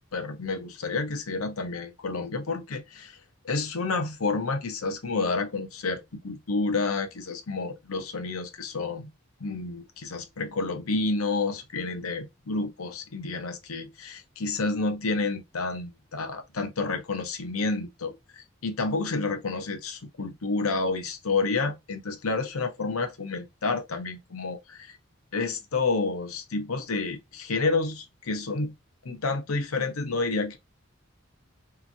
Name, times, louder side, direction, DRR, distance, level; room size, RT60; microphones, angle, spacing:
voice 1, 0.1-3.2 3.4-9.1 9.4-25.0 25.3-28.8 29.0-30.6, left 3 dB, 90° left, 0.8 m, -30 dB
2.8 x 2.6 x 2.5 m
head